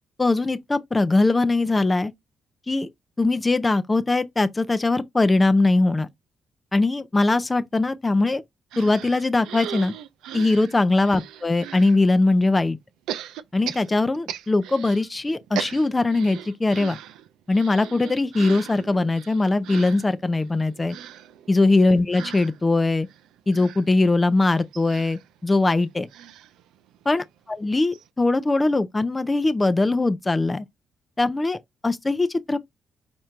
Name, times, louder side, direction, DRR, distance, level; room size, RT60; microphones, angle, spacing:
voice 1, 0.2-2.1 2.7-2.9 3.2-6.1 6.7-8.4 8.8-9.9 10.3-12.8 13.5-17.0 17.5-21.0 21.5-23.1 23.5-26.1 27.1-27.2 27.6-30.6 31.2-32.6, left 2 dB, 25° left, 0.5 m, -21 dB
sound 1, 8.7-12.0 13.1-15.1 15.3-27.3 27.6-27.7 27.9-28.1, right 10 dB, 90° right, 0.4 m, -39 dB
4.4 x 4.2 x 2.5 m
supercardioid pair, 65°, 0 cm